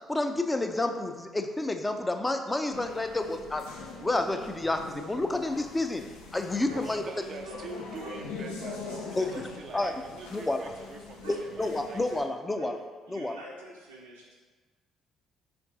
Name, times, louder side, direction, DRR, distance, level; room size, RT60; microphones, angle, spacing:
voice 1, 0.1-3.7 4.0-6.1 6.3-7.0 9.2-9.3 9.7-9.9 10.3-10.6 11.3-12.8 13.1-13.3, left 2 dB, 15° left, 6 dB, 0.5 m, -29 dB
sound 1, 2.7-12.2, left 4 dB, 80° left, 0.5 m, -43 dB
voice 2, 6.7-11.2 11.5-12.3, right 4 dB, 50° right, 5 dB, 0.4 m, -44 dB
voice 3, 11.1-11.4 12.5-12.8 13.0-14.5, right 1 dB, 90° right, -3 dB, 0.6 m, -45 dB
4.7 x 3.4 x 3.0 m, 1.4 s
hypercardioid pair, 50°, 0 cm